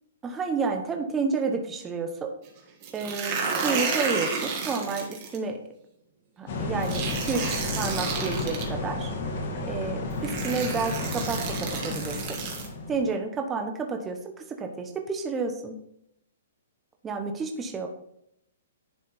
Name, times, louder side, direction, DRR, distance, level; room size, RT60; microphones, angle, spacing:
voice 1, 0.2-2.3 2.9-5.6 6.4-9.1 9.6-12.2 12.9-14.2 14.5-15.7 17.0-17.9, right 4 dB, 10° right, 4 dB, 0.9 m, -30 dB
sound 1, 2.8-5.4 6.8-8.6 9.7-9.8 10.2-12.7, right 5 dB, 30° right, 1.6 m, -31 dB
sound 2, 6.5-13.1, left 2 dB, 50° left, 1.9 m, -32 dB
10.5 x 3.5 x 4.3 m, 0.76 s
hypercardioid pair, 165°, 0 cm